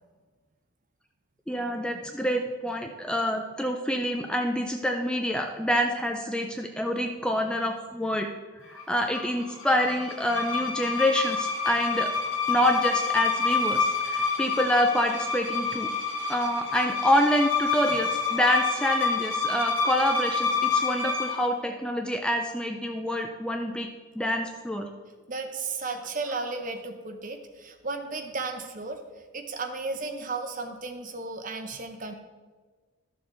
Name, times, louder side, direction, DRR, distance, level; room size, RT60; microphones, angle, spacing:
voice 1, 1.5-8.3 8.6-12.1 12.5-15.9 16.3-23.9 24.2-24.9, equal, 5° left, 4 dB, 0.4 m, -27 dB
sound 1, 8.8-21.5, left 4 dB, 70° left, 1.1 m, -28 dB
voice 2, 25.3-29.0 29.3-32.1, right 3 dB, 40° right, 6 dB, 0.8 m, -34 dB
12.0 x 6.8 x 3.8 m, 1.4 s
head